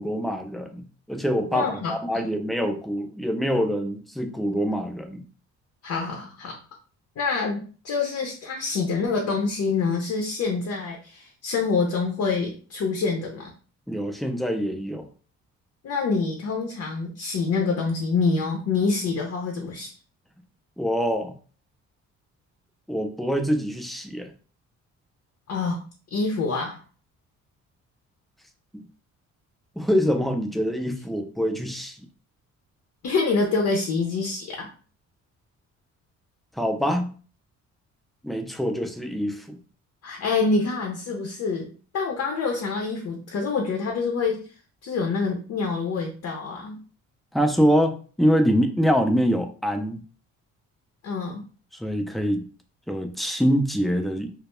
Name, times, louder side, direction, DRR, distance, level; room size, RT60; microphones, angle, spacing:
voice 1, 0.0-5.2 13.9-15.1 20.8-21.3 22.9-24.3 28.7-28.8 29.8-32.0 36.6-37.1 38.2-39.6 47.3-50.0 51.8-52.5 52.9-54.3, equal, ahead, 5 dB, 0.3 m, -25 dB
voice 2, 1.5-2.3 5.8-6.5 7.2-13.5 15.8-19.9 25.5-25.8 26.1-26.8 33.0-34.7 40.0-44.5 44.8-46.8 51.0-51.4, left 4 dB, 60° left, 1 dB, 0.6 m, -26 dB
2.2 x 2.0 x 2.9 m, 0.39 s
cardioid pair, 90°, 30 cm